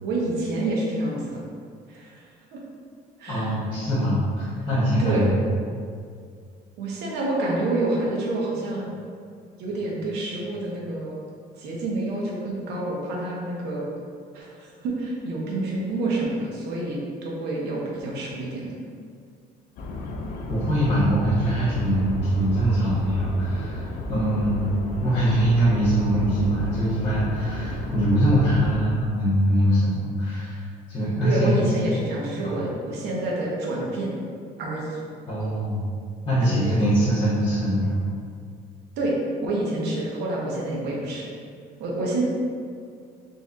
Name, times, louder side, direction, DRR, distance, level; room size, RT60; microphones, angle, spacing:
voice 1, 0.0-1.4 1.9-2.2 2.5-2.6 3.2-3.5 5.0-5.3 6.8-8.9 9.6-11.2 11.6-13.9 14.3-18.7 31.2-34.1 34.6-35.0 36.4-36.8 39.0-39.1 39.4-41.3 41.8-42.2, right 2 dB, 80° right, -3 dB, 0.8 m, -28 dB
voice 2, 3.3-5.3 20.5-24.7 25.0-31.6 32.4-32.5 35.3-35.8 36.2-38.0, equal, 30° left, -14 dB, 1.1 m, -23 dB
sound 1, 19.8-28.8, left 2 dB, 60° left, 0.5 m, -33 dB
4.0 x 2.6 x 2.4 m, 2.2 s
cardioid pair, 110°, 17 cm